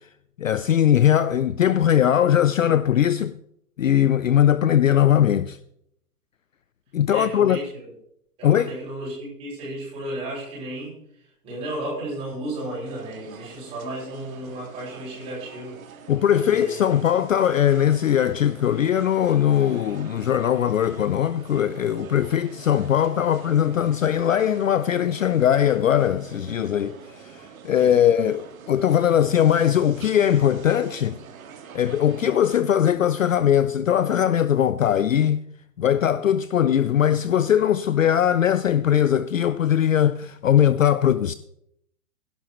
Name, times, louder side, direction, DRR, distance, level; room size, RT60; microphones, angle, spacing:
voice 1, 0.4-3.3 3.8-5.6 6.9-7.6 8.4-8.7 16.1-31.2 31.7-35.4 35.8-41.3, left 10 dB, 55° left, 0.5 m, -20 dB
voice 2, 7.1-7.9 8.4-15.8 16.3-16.9 27.8-28.0, right 1 dB, 10° right, 6.0 m, -34 dB
sound 1, 12.9-32.6, right 6 dB, 55° right, 1.9 m, -45 dB
17.0 x 11.5 x 3.0 m
hypercardioid pair, 180°, 48 cm